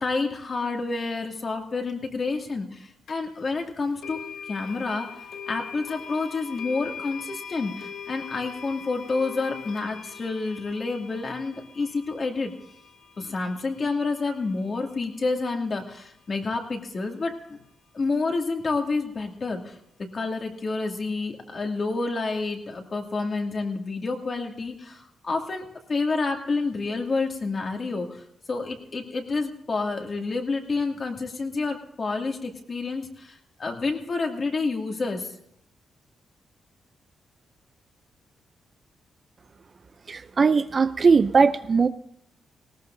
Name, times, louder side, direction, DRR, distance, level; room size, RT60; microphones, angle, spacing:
voice 1, 0.0-4.2 4.5-5.1 5.5-12.5 13.2-17.6 17.9-19.8 20.1-28.2 28.5-35.3, left 3 dB, 40° left, 2 dB, 2.3 m, -29 dB
sound 1, 3.1-3.2 4.0-15.0, left 7 dB, 80° left, 1.3 m, -42 dB
voice 2, 40.1-41.9, right 5 dB, 40° right, 13 dB, 0.5 m, -19 dB
19.5 x 18.0 x 2.7 m, 0.76 s
cardioid pair, 115°, 0 cm